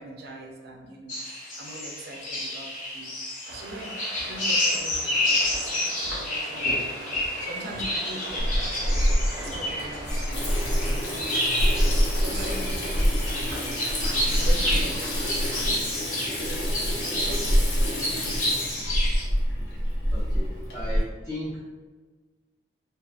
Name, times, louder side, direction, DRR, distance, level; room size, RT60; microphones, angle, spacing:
voice 1, 0.0-3.1 3.5-4.0 4.2-10.4 10.8-13.4 14.2-15.1 15.5-18.1, right 1 dB, 60° right, 1 dB, 0.4 m, -42 dB
sound 1, 1.1-19.2, left 1 dB, 45° left, 0.7 m, -30 dB
sound 2, 3.4-15.7, right 1 dB, 90° right, 0.7 m, -40 dB
Water tap faucet / Sink (filling or washing), 8.4-21.0, equal, 80° left, 0.7 m, -26 dB
voice 2, 20.1-21.6, left 1 dB, 15° left, -7 dB, 0.3 m, -36 dB
2.4 x 2.4 x 2.4 m, 1.3 s
head